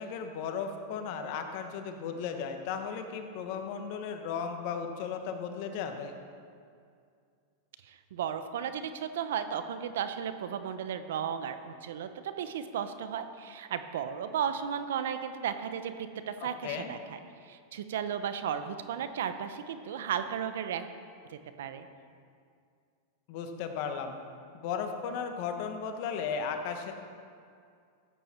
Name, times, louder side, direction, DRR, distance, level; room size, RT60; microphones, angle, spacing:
voice 1, 0.0-6.1 16.4-16.9 23.3-24.2 24.6-26.9, left 6 dB, 60° left, 6 dB, 1.2 m, -35 dB
voice 2, 7.8-20.9 21.3-21.9, right 8 dB, 75° right, 10 dB, 0.8 m, -35 dB
14.0 x 8.4 x 4.4 m, 2.3 s
hypercardioid pair, 115°, 0 cm